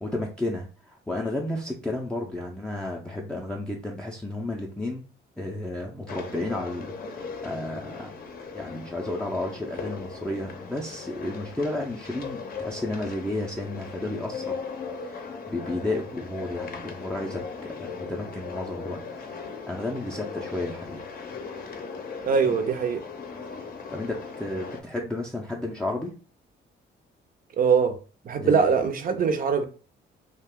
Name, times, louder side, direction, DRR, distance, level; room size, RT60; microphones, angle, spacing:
voice 1, 0.0-5.1 5.4-8.1 8.5-14.6 15.0-19.0 19.7-21.0 22.4-22.6 23.9-26.1 28.4-28.7, left 2 dB, 5° left, 0.4 m, -32 dB
sound 1, 6.1-24.8, left 5 dB, 50° left, 0.6 m, -38 dB
voice 2, 22.2-23.0 27.6-28.0 28.2-29.7, right 6 dB, 45° right, 0.5 m, -22 dB
2.4 x 2.2 x 3.5 m
cardioid pair, 90°, 20 cm